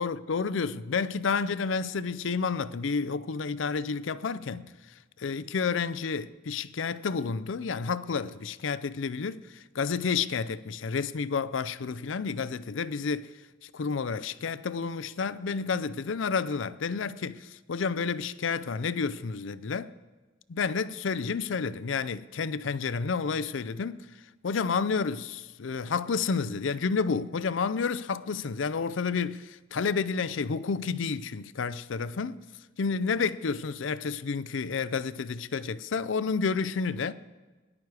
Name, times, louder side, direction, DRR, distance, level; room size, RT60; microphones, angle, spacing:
voice 1, 0.0-4.7 5.2-13.3 13.6-19.9 20.5-24.1 24.4-32.4 32.8-37.1, left 5 dB, 75° left, 0.5 m, -30 dB
18.5 x 11.0 x 4.9 m
head